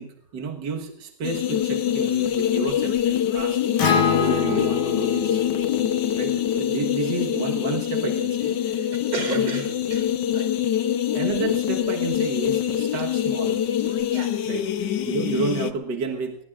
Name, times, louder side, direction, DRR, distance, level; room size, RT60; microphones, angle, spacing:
voice 1, 0.0-3.6 4.2-5.4 6.1-8.6 9.3-9.6 11.1-13.6 14.4-16.4, right 5 dB, 60° right, 1 dB, 2.0 m, -31 dB
sound 1, 1.2-15.7, left 10 dB, 65° left, 1.5 m, -24 dB
Acoustic guitar, 3.8-8.0, left 6 dB, 80° left, 2.8 m, -27 dB
voice 2, 8.6-10.5 13.9-14.3, right 3 dB, 90° right, 3 dB, 4.4 m, -34 dB
22.0 x 21.0 x 2.5 m, 0.76 s
omnidirectional pair, 2.2 m